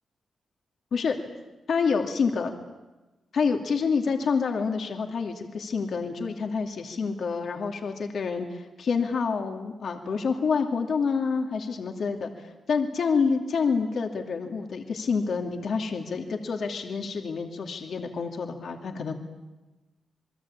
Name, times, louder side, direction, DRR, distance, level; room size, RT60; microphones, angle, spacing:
voice 1, 1.7-2.5 3.3-19.1, left 5 dB, 65° left, 3 dB, 2.5 m, -28 dB
28.0 x 22.5 x 8.7 m, 1.1 s
wide cardioid pair, 130°, 0 cm